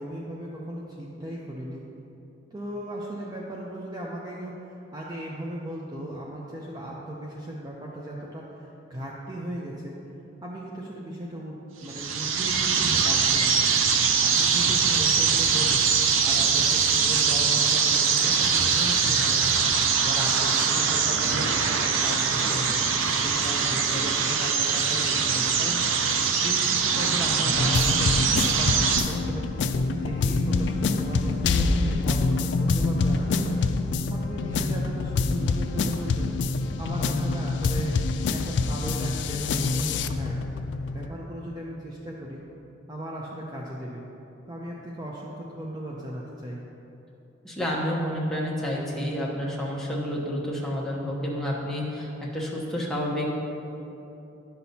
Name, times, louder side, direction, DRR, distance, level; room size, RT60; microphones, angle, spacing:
voice 1, 0.0-1.8 2.5-10.0 10.4-11.6 11.8-13.7 14.2-15.8 16.2-19.5 20.0-22.8 23.1-25.8 26.3-33.6 34.1-36.3 36.8-38.0 38.3-40.4 40.9-42.4 42.9-44.1 44.5-46.6, right 1 dB, 20° right, -4 dB, 0.5 m, -36 dB
sound 1, 11.8-29.0, right 6 dB, 90° right, 0.5 m, -23 dB
sound 2, 27.4-41.1, left 3 dB, 65° left, 0.3 m, -26 dB
voice 2, 31.4-32.1 47.4-53.3, equal, ahead, -5 dB, 0.9 m, -29 dB
11.0 x 6.0 x 2.8 m, 3.0 s
head